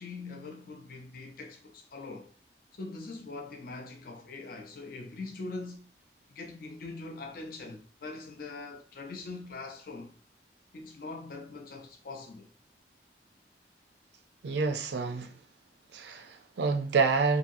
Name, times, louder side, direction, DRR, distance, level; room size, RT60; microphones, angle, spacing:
voice 1, 0.0-2.3 2.7-5.8 6.3-10.1 10.7-12.5, left 3 dB, 55° left, 0.4 m, -42 dB
voice 2, 14.4-15.3 15.9-17.4, right 4 dB, 70° right, 0.4 m, -28 dB
2.7 x 2.6 x 2.5 m
head